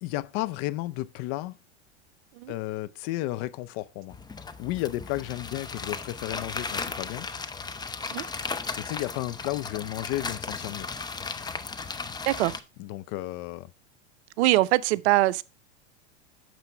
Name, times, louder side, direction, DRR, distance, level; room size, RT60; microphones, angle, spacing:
voice 1, 0.0-1.6 2.5-4.2 4.6-7.3 8.8-10.9 12.8-13.7, left 16 dB, 50° left, 0.7 m, -33 dB
sound 1, 4.1-12.6, left 4 dB, 10° left, 0.6 m, -36 dB
voice 2, 12.3-12.6 14.4-15.4, right 18 dB, 65° right, 0.6 m, -22 dB
9.4 x 6.8 x 3.4 m
hypercardioid pair, 95°, 37 cm